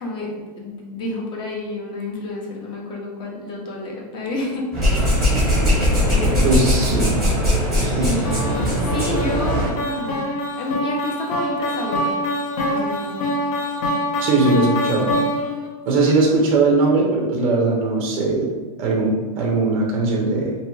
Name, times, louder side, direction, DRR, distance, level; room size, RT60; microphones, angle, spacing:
voice 1, 0.0-5.3 5.7-6.5 6.7-7.1 8.0-12.2 12.7-13.5 16.2-16.3, left 1 dB, 25° left, -1 dB, 0.5 m, -30 dB
sound 1, 4.7-9.7, equal, ahead, 0.9 m, -19 dB
voice 2, 6.4-7.1 7.7-8.1 14.2-15.1 15.9-18.5 18.8-20.6, right 3 dB, 25° right, -1 dB, 0.4 m, -19 dB
sound 2, 8.2-15.7, equal, 65° left, 0.8 m, -25 dB
2.6 x 2.4 x 3.0 m, 1.3 s
supercardioid pair, 150°, 21 cm